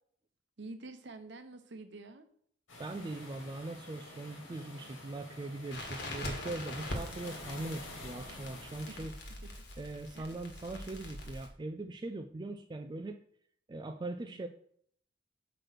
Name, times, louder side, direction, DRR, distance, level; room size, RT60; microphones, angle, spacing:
voice 1, 0.6-2.3 8.9-9.0 9.4-9.5 10.1-10.3 14.0-14.5, right 2 dB, 60° right, 8 dB, 0.8 m, -48 dB
sound 1, 2.7-9.1, left 1 dB, 85° left, 2.2 m, -49 dB
voice 2, 2.8-9.1 9.8-13.2 13.7-14.5, right 2 dB, 20° right, 6 dB, 0.3 m, -41 dB
Crackle, 5.7-11.5, left 1 dB, 60° left, 1.5 m, -43 dB
6.1 x 4.9 x 6.2 m, 0.64 s
head